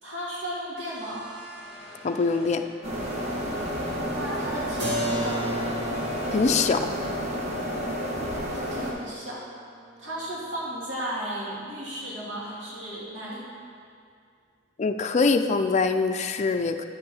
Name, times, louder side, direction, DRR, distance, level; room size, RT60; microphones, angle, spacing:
voice 1, 0.0-1.3 4.1-5.5 8.5-9.4 10.0-13.4, right 1 dB, 80° right, -7 dB, 2.2 m, -35 dB
sound 1, 0.8-6.7, equal, 5° right, 1.6 m, -46 dB
voice 2, 2.0-2.6 6.3-6.9 14.8-16.8, left 4 dB, 35° left, 7 dB, 0.4 m, -23 dB
sound 2, 2.8-8.9, equal, 35° right, 1.3 m, -30 dB
Keyboard (musical), 4.8-10.4, equal, 65° right, 2.1 m, -35 dB
9.8 x 6.7 x 4.2 m, 2.2 s
head